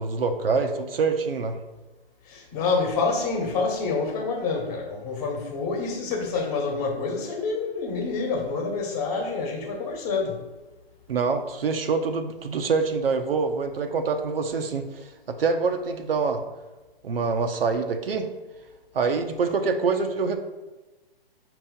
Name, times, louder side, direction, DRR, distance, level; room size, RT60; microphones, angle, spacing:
voice 1, 0.0-1.6 11.1-14.9 15.3-16.4 17.0-18.3 18.9-20.4, right 4 dB, 65° right, 5 dB, 0.7 m, -25 dB
voice 2, 2.2-10.4, left 4 dB, 30° left, -1 dB, 1.2 m, -27 dB
6.0 x 3.0 x 5.3 m, 1.2 s
figure-of-eight pair, 130°, 31 cm